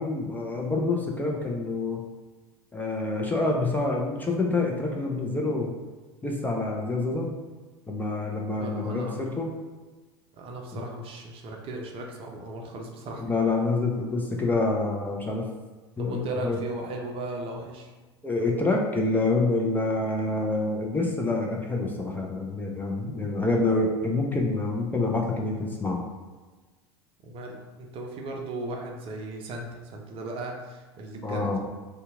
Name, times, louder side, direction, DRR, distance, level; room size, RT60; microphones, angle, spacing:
voice 1, 0.0-2.0 2.7-5.7 6.2-7.3 7.9-9.5 13.3-15.5 16.0-16.6 18.2-26.0 31.2-31.6, left 2 dB, 10° left, -1 dB, 0.5 m, -27 dB
voice 2, 8.6-9.2 10.3-13.2 16.0-17.9 27.2-31.6, right 2 dB, 40° right, 1 dB, 0.6 m, -36 dB
2.8 x 2.3 x 3.6 m, 1.3 s
figure-of-eight pair, 75°, 14 cm